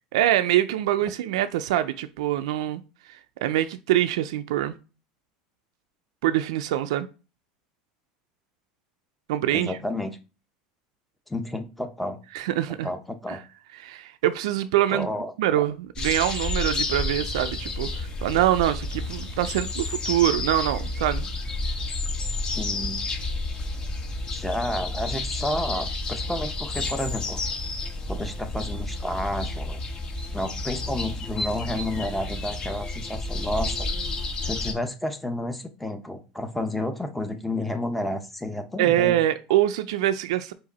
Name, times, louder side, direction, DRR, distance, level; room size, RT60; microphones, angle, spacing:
voice 1, 0.1-2.8 3.1-4.8 6.2-7.1 9.3-9.8 12.3-12.9 13.3-13.4 13.7-15.1 15.4-21.3 38.8-40.5, right 13 dB, 85° right, 0.4 m, -24 dB
voice 2, 9.5-10.2 11.3-12.2 12.8-13.4 14.9-15.3 22.6-23.0 24.3-27.4 28.1-29.8 30.3-33.9 34.4-39.2, left 1 dB, 5° left, 0.7 m, -31 dB
sound 1, 15.9-34.7, left 2 dB, 25° left, 1.0 m, -30 dB
4.9 x 2.6 x 4.1 m
supercardioid pair, 130°, 3 cm